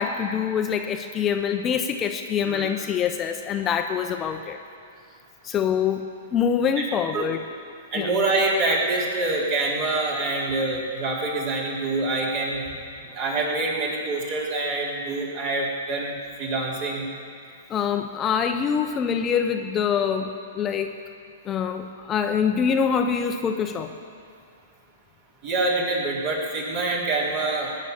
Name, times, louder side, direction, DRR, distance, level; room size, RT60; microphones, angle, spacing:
voice 1, 0.0-4.6 5.4-7.5 7.9-8.1 17.7-20.9 21.4-23.9, left 7 dB, 25° left, 6 dB, 0.9 m, -25 dB
voice 2, 7.9-12.6 13.1-17.1 25.4-27.7, right 2 dB, 45° right, -3 dB, 4.3 m, -26 dB
20.0 x 9.6 x 7.1 m, 2.3 s
figure-of-eight pair, 110°, 0 cm